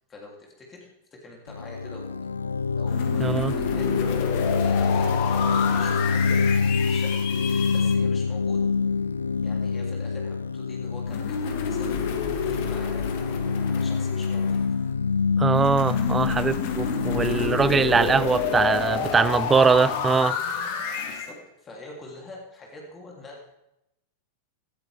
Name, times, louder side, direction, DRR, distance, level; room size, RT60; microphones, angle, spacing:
voice 1, 0.1-0.9 1.2-2.3 2.7-6.4 6.9-7.2 7.7-8.6 9.4-13.0 13.7-14.6 21.0-23.4, left 2 dB, 20° left, 3.1 m, -45 dB
sound 1, 1.5-19.1, left 5 dB, 75° left, 0.4 m, -26 dB
sound 2, 2.9-7.9 11.1-14.8 15.5-21.3, left 7 dB, 50° left, 1.7 m, -29 dB
voice 2, 3.2-3.5 15.4-20.4, right 5 dB, 15° right, 0.4 m, -22 dB
16.5 x 13.0 x 3.5 m
figure-of-eight pair, 90°, 0 cm